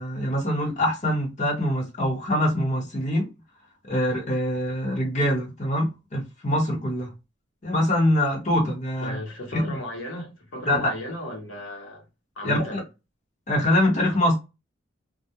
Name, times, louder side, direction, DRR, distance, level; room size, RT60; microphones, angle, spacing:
voice 1, 0.0-3.3 3.9-7.1 7.6-9.2 9.5-9.8 10.6-10.9 12.4-12.8 13.5-14.4, left 1 dB, 40° left, 0.9 m, -24 dB
voice 2, 9.0-12.0 12.4-12.8, left 1 dB, 85° left, 0.9 m, -35 dB
2.3 x 2.1 x 2.8 m
head